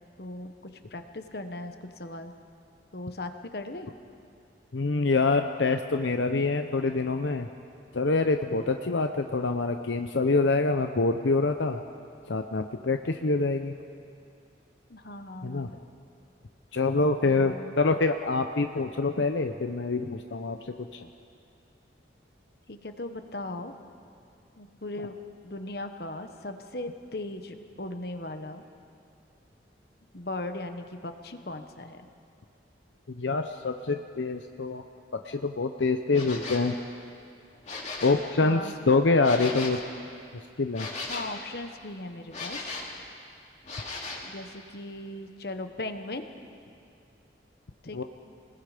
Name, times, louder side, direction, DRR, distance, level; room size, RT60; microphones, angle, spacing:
voice 1, 0.2-2.3 2.9-3.9 14.9-15.8 17.2-17.8 22.7-23.7 24.6-25.2 25.4-28.6 30.1-32.1 38.4-40.4 41.1-42.8 44.2-46.3 47.8-48.0, left 2 dB, 55° left, 7 dB, 1.2 m, -38 dB
voice 2, 4.7-7.5 7.9-11.8 12.3-13.7 15.4-15.7 16.7-20.6 20.9-21.1 33.1-34.8 35.1-36.7 38.0-38.6 38.9-39.8 40.6-40.9 47.9-48.0, left 3 dB, 80° left, 6 dB, 0.7 m, -25 dB
sound 1, 36.1-36.7 37.5-38.3 39.2-39.8 40.7-41.4 42.3-43.0 43.6-44.3, left 3 dB, 40° left, 3.0 m, -37 dB
28.5 x 20.5 x 5.1 m, 2.5 s
head